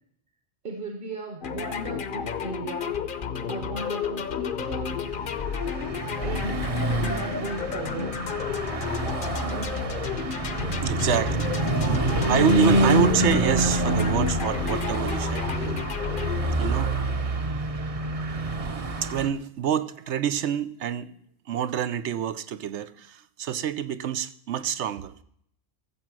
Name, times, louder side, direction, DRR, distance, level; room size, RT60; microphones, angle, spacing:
voice 1, 0.6-3.0 3.5-5.0 6.2-6.7 7.0-8.2 10.6-11.3, right 2 dB, 55° right, 4 dB, 1.4 m, -36 dB
sound 1, 1.4-17.3, left 6 dB, 55° left, 0.9 m, -32 dB
Car passing by / Truck, 4.9-19.3, right 1 dB, 35° right, 0.8 m, -27 dB
voice 2, 10.8-11.5 11.8-12.0 12.3-15.6 16.5-17.0 19.0-21.1 21.5-25.2, right 9 dB, 85° right, 13 dB, 1.0 m, -27 dB
14.5 x 7.4 x 6.1 m, 0.68 s
omnidirectional pair, 1.1 m